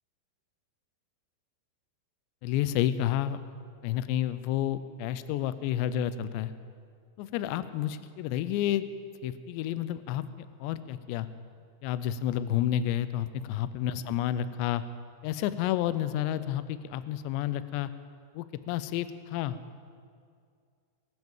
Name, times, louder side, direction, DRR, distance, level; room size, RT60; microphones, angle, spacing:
voice 1, 2.4-3.4 3.8-6.5 7.2-8.9 9.2-11.3 11.8-14.8 15.2-17.9 18.3-19.6, left 11 dB, 85° left, 13 dB, 2.5 m, -30 dB
19.5 x 9.5 x 7.3 m, 2.2 s
omnidirectional pair, 5.7 m